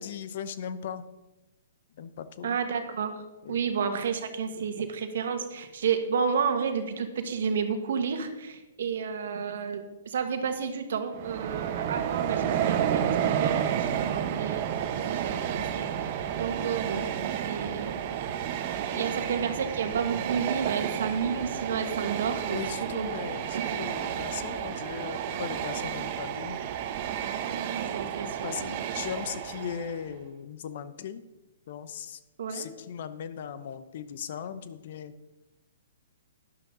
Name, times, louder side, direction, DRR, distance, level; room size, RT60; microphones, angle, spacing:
voice 1, 0.0-1.1 2.0-2.6 3.4-3.6 18.9-19.2 22.5-26.6 28.2-31.2 31.7-32.2 32.5-35.1, left 8 dB, 55° left, 13 dB, 0.9 m, -38 dB
voice 2, 2.4-3.2 3.5-14.6 15.1-17.1 17.4-18.0 18.9-23.1 23.5-23.7 27.5-28.5 32.4-32.7, right 6 dB, 65° right, 7 dB, 1.6 m, -31 dB
Train, 11.1-30.0, right 9 dB, 45° right, 1.1 m, -31 dB
12.0 x 11.0 x 3.9 m, 1.0 s
hypercardioid pair, 125°, 0 cm